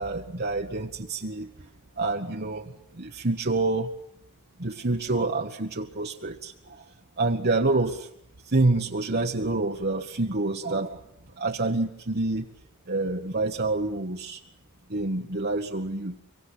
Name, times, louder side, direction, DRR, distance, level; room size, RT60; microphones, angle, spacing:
voice 1, 0.0-1.5 2.0-3.9 4.6-6.8 7.2-8.1 8.5-11.0 11.4-12.4 12.9-14.4 14.9-16.2, right 2 dB, 45° right, 2 dB, 1.3 m, -27 dB
25.5 x 23.5 x 8.2 m, 0.73 s
head